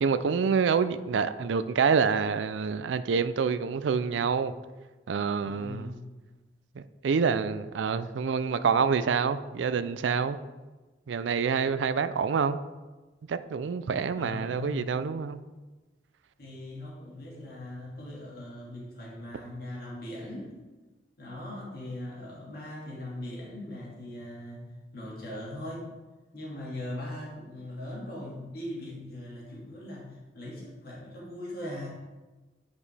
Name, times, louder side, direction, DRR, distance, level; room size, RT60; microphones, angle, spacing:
voice 1, 0.0-4.5 5.1-5.9 6.8-10.4 11.1-12.6 13.3-15.4, right 6 dB, 90° right, 12 dB, 0.4 m, -27 dB
voice 2, 5.4-6.1 14.2-14.9 16.4-20.5 21.2-25.9 26.3-31.9, left 1 dB, 55° left, -5 dB, 2.0 m, -40 dB
9.4 x 5.1 x 3.3 m, 1.2 s
head